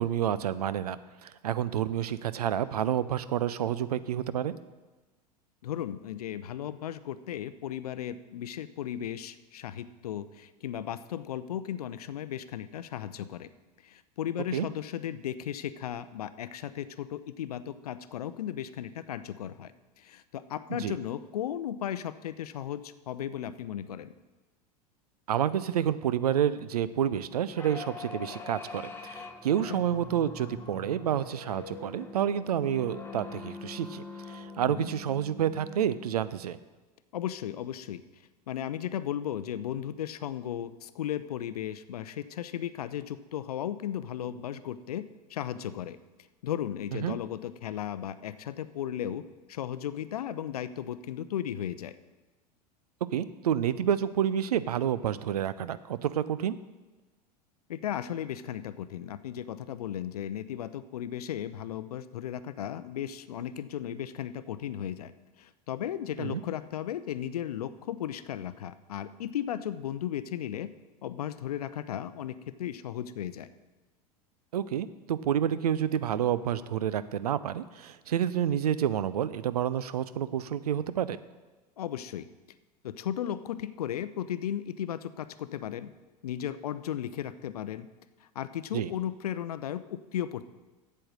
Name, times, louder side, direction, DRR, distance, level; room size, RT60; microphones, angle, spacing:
voice 1, 0.0-4.6 14.5-14.7 20.8-20.9 25.3-36.6 47.0-47.2 53.1-56.6 66.2-66.4 74.5-81.2 88.7-88.9, right 10 dB, 70° right, 15 dB, 0.5 m, -29 dB
voice 2, 5.6-13.5 13.8-19.7 20.0-24.1 29.7-29.8 34.7-34.9 37.1-38.0 38.5-45.0 45.3-46.0 46.4-52.0 57.7-65.1 65.4-70.7 71.0-73.5 81.8-82.3 82.8-85.9 86.2-87.9 88.2-90.5, left 10 dB, 65° left, 14 dB, 0.5 m, -35 dB
sound 1, 27.5-36.3, left 4 dB, 10° left, 1.2 m, -44 dB
8.6 x 7.7 x 6.5 m, 1.2 s
figure-of-eight pair, 85°, 20 cm